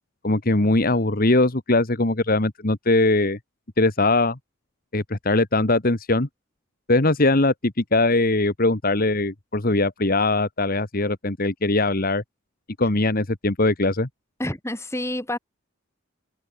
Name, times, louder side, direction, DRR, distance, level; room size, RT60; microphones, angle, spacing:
voice 1, 0.2-3.4 3.8-4.4 4.9-6.3 6.9-12.2 12.8-14.1, left 2 dB, 45° left, 1.5 m, -21 dB
voice 2, 14.4-15.4, left 1 dB, 15° left, 4.5 m, -28 dB
head